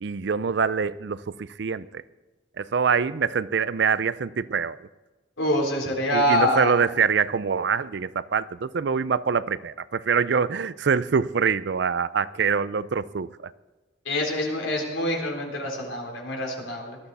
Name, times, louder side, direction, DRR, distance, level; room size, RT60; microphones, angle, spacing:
voice 1, 0.0-2.0 2.6-4.8 6.1-13.5, right 6 dB, 60° right, 0.4 m, -25 dB
voice 2, 5.4-6.7 14.1-17.0, left 1 dB, 85° left, 3.9 m, -25 dB
19.0 x 12.5 x 4.1 m
head